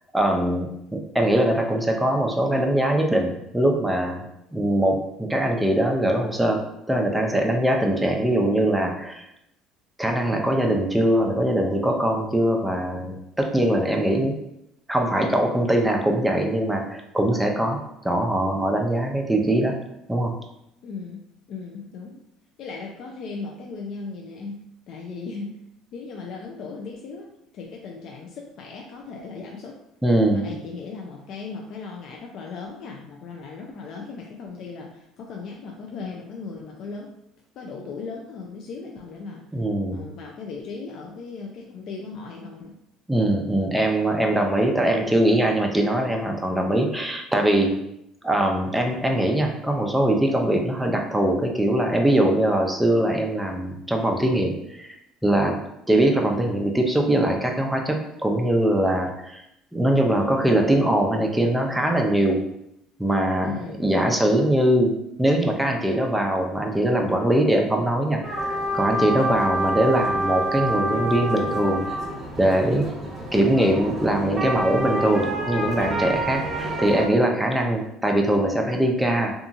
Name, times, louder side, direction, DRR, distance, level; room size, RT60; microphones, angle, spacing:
voice 1, 0.1-4.2 4.5-6.6 6.9-9.2 10.0-14.3 14.9-17.8 18.0-19.8 20.1-20.3 30.0-30.4 39.5-40.0 43.1-47.7 48.2-55.0 55.2-55.5 55.9-59.4 59.7-62.4 63.0-63.5 63.8-64.9 65.2-71.8 72.4-72.9 73.3-79.3, right 1 dB, 5° right, 2 dB, 0.5 m, -22 dB
voice 2, 20.8-22.2 22.6-25.6 25.9-27.3 27.5-29.8 30.3-37.2 37.6-39.4 39.9-42.8 63.4-63.8, left 4 dB, 60° left, 0 dB, 0.4 m, -37 dB
sound 1, 68.2-77.1, right 1 dB, 25° right, 0.9 m, -27 dB
2.7 x 2.3 x 2.5 m, 0.80 s
supercardioid pair, 90°, 0 cm